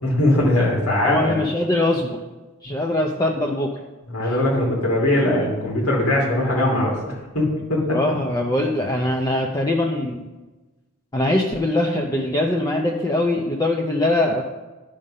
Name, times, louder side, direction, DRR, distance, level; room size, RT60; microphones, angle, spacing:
voice 1, 0.0-1.4 4.1-8.2, left 1 dB, 85° left, -3 dB, 2.8 m, -21 dB
voice 2, 1.1-2.2 2.6-3.7 7.9-10.2 11.1-14.4, left 1 dB, 15° left, 0 dB, 0.6 m, -22 dB
11.5 x 5.1 x 5.5 m, 1.2 s
head